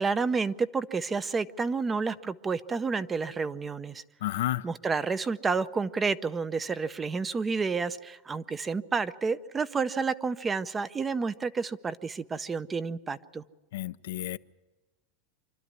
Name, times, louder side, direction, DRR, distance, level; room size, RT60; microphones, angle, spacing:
voice 1, 0.0-4.0 4.6-13.4, right 4 dB, 15° right, 15 dB, 0.6 m, -30 dB
voice 2, 4.2-4.6 13.7-14.4, left 15 dB, 75° left, 13 dB, 0.6 m, -31 dB
26.0 x 12.5 x 9.7 m, 1.1 s
supercardioid pair, 135°, 0 cm